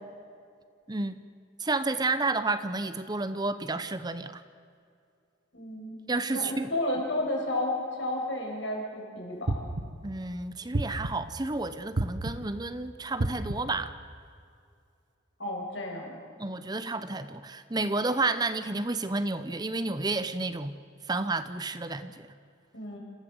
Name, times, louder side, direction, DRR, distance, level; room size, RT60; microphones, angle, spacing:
voice 1, 0.9-1.2 1.6-4.4 6.1-6.7 10.0-13.9 16.4-20.8 21.1-22.3, right 3 dB, 20° right, 12 dB, 0.8 m, -31 dB
voice 2, 5.5-6.0 6.3-9.7 15.4-16.2 22.7-23.0, left 1 dB, 75° left, -1 dB, 6.2 m, -32 dB
sound 1, 9.5-10.1 10.7-11.4 12.0-12.6 13.2-13.8, right 2 dB, 70° right, 1.2 m, -31 dB
27.0 x 15.5 x 7.8 m, 2.3 s
head